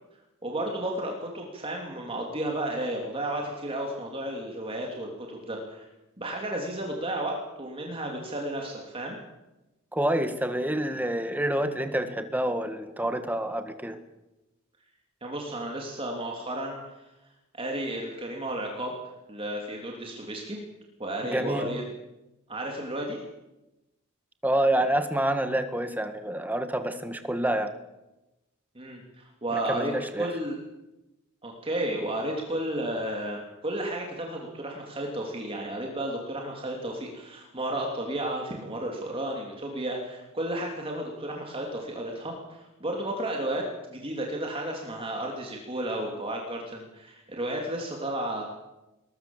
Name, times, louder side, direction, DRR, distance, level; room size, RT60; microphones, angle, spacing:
voice 1, 0.4-5.9 6.2-9.2 15.2-17.0 17.5-19.0 19.3-20.6 21.0-21.8 22.5-23.2 28.7-30.6 31.4-48.4, right 1 dB, 25° right, 0 dB, 3.3 m, -33 dB
voice 2, 9.9-14.0 21.2-21.7 24.4-27.7 29.5-30.3, right 1 dB, 10° right, 8 dB, 1.6 m, -27 dB
21.5 x 20.0 x 7.4 m, 0.99 s
head